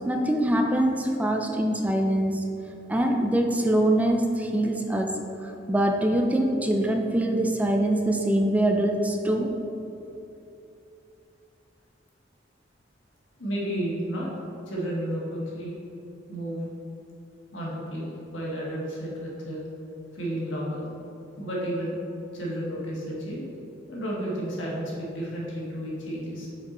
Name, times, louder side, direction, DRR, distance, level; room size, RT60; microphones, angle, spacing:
voice 1, 0.1-2.5 2.9-9.5, right 1 dB, 10° right, 3 dB, 0.3 m, -24 dB
voice 2, 13.4-14.3 14.7-15.7 16.3-16.6 17.5-19.6 20.1-20.9 21.4-22.0 22.3-23.5 23.9-26.5, right 1 dB, 80° left, -4 dB, 1.5 m, -32 dB
5.8 x 4.6 x 3.8 m, 2.8 s
head